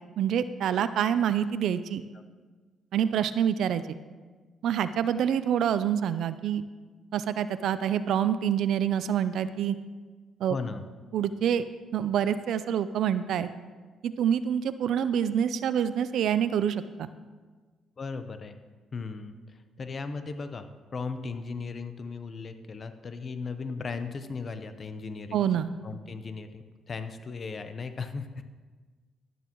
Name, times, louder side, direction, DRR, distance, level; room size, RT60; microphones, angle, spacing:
voice 1, 0.2-2.0 2.9-3.8 4.6-6.6 7.1-9.8 10.4-10.6 11.1-11.6 11.9-13.5 14.0-17.1 25.3-25.7, right 9 dB, 75° right, 13 dB, 0.4 m, -26 dB
voice 2, 10.5-10.8 18.0-18.6 18.9-19.4 19.8-25.4 25.8-28.4, left 4 dB, 40° left, 9 dB, 0.8 m, -37 dB
12.0 x 10.5 x 3.0 m, 1.4 s
cardioid pair, 90°, 0 cm